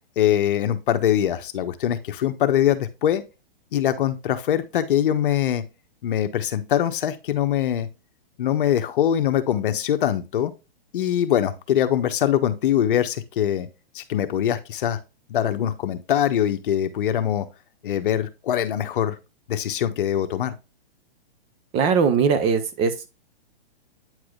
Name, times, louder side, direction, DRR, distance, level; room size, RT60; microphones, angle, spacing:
voice 1, 0.2-3.2 3.7-5.6 6.0-7.9 8.4-10.5 10.9-13.7 13.9-15.0 15.3-17.5 17.8-19.1 19.5-20.5, left 10 dB, 55° left, 1.0 m, -23 dB
voice 2, 21.7-23.1, right 6 dB, 20° right, 0.6 m, -20 dB
9.0 x 4.8 x 2.3 m
hypercardioid pair, 150°, 31 cm